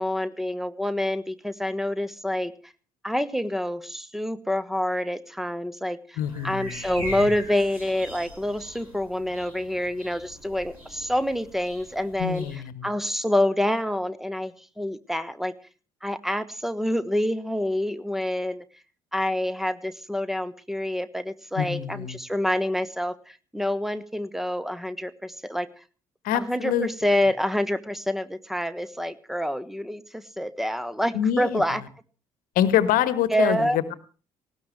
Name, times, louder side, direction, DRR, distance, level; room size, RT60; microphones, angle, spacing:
voice 1, 0.0-2.7 3.0-6.2 6.4-12.5 12.8-15.5 16.0-18.6 19.1-25.7 26.3-31.8 33.3-33.8, left 1 dB, ahead, 14 dB, 1.2 m, -27 dB
voice 2, 6.2-6.8 12.2-12.9 21.5-22.2 26.2-26.9 31.1-31.8 32.5-33.9, left 10 dB, 55° left, 16 dB, 1.3 m, -25 dB
sound 1, 6.2-12.5, equal, 85° right, 6.0 m, -41 dB
19.0 x 17.5 x 3.2 m, 0.36 s
figure-of-eight pair, 55°, 18 cm